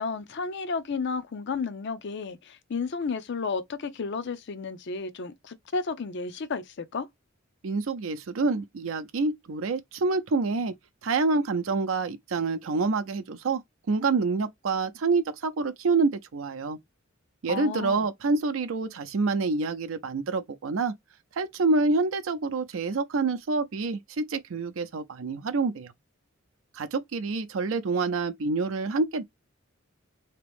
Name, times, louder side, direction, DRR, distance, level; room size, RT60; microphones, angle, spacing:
voice 1, 0.0-7.1 17.5-18.1, left 4 dB, 60° left, 0.5 m, -32 dB
voice 2, 7.6-10.7 11.0-13.6 13.9-16.8 17.4-20.9 21.4-25.9 26.7-29.2, right 3 dB, 80° right, 0.5 m, -27 dB
3.4 x 2.9 x 3.4 m
head